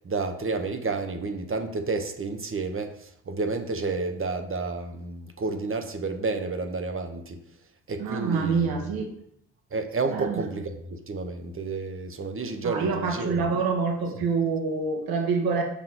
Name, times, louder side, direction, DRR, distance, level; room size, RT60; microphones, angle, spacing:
voice 1, 0.0-7.4 7.9-8.7 9.7-13.4, right 3 dB, 35° right, 7 dB, 1.3 m, -30 dB
voice 2, 8.0-9.1 10.1-10.4 12.6-15.6, right 5 dB, 80° right, 2 dB, 1.6 m, -26 dB
6.3 x 5.8 x 4.0 m, 0.72 s
supercardioid pair, 60°, 36 cm